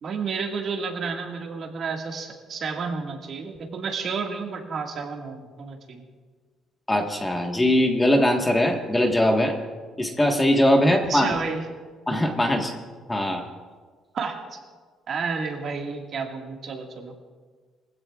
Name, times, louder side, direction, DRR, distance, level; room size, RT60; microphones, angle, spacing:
voice 1, 0.0-6.0 10.9-11.6 14.1-14.6 15.1-17.2, right 5 dB, 50° right, 2 dB, 1.9 m, -31 dB
voice 2, 6.9-9.6 10.0-11.3 12.1-12.7 13.1-13.4, left 1 dB, 10° left, 2 dB, 1.5 m, -21 dB
23.0 x 15.5 x 2.4 m, 1.5 s
cardioid pair, 130°, 0 cm